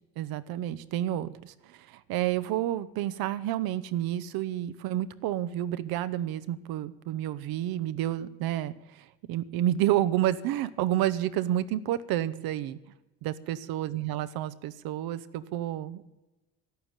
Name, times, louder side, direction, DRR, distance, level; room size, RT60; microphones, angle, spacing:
voice 1, 0.2-12.8 13.2-16.0, right 13 dB, 75° right, 13 dB, 0.9 m, -30 dB
11.5 x 11.0 x 8.9 m, 1.0 s
cardioid pair, 95°, 37 cm